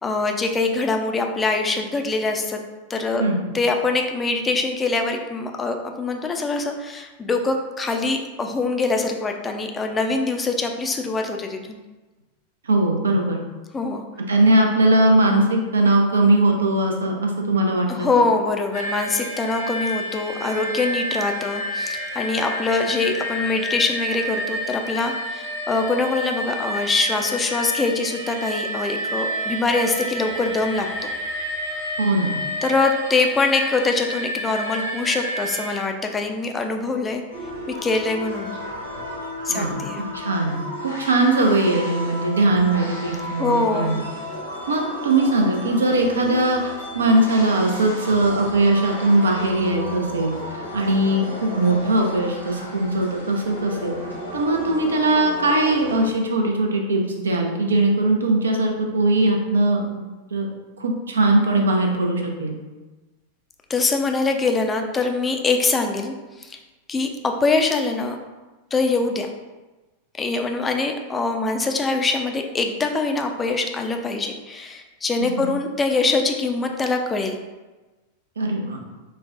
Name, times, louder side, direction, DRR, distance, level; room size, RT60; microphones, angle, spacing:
voice 1, 0.0-2.6 2.9-3.2 3.5-11.8 13.7-14.0 17.9-31.1 32.6-37.2 37.7-38.6 39.4-40.1 43.4-44.1 63.7-66.6 66.9-68.2 68.7-69.3 70.2-77.3, left 3 dB, 15° left, 4 dB, 0.3 m, -23 dB
voice 2, 12.6-13.4 14.3-18.3 32.0-32.4 39.5-44.0 44.7-46.6 46.9-53.9 54.3-60.5 60.8-62.6 75.2-75.5 78.4-78.8, right 2 dB, 70° right, 2 dB, 0.5 m, -20 dB
sound 1, 18.7-35.8, equal, 55° left, 0.7 m, -29 dB
sound 2, 37.3-56.1, left 1 dB, 85° left, 0.9 m, -34 dB
4.2 x 2.1 x 2.3 m, 1.2 s
figure-of-eight pair, 90°, 0 cm